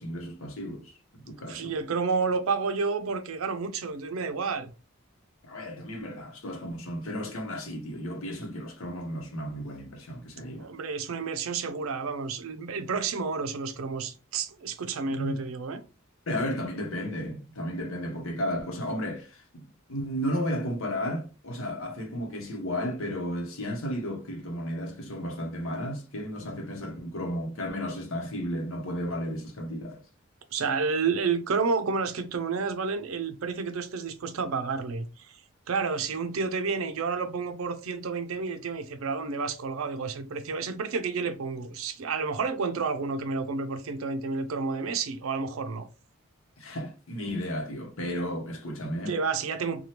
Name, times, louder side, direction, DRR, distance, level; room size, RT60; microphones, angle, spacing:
voice 1, 0.0-1.8 5.4-10.7 15.1-15.4 16.3-30.0 46.6-49.2, equal, 75° left, 0.9 m, -33 dB
voice 2, 1.4-4.7 10.6-15.8 30.5-35.4 35.7-45.9 49.1-49.8, right 4 dB, 75° right, 0.5 m, -30 dB
2.8 x 2.3 x 3.2 m
head